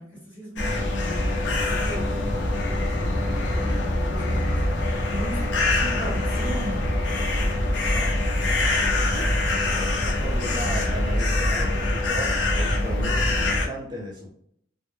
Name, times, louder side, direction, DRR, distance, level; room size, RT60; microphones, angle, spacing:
voice 1, 0.0-1.5 1.8-2.9 3.2-6.9 7.7-7.8 9.1-9.3, right 1 dB, 25° left, -9 dB, 1.3 m, -38 dB
sound 1, 0.6-13.7, left 1 dB, 75° left, 0.5 m, -24 dB
voice 2, 3.5-3.8 7.9-9.2 9.5-14.3, right 1 dB, 25° right, -1 dB, 0.4 m, -37 dB
2.1 x 2.0 x 3.0 m, 0.66 s
head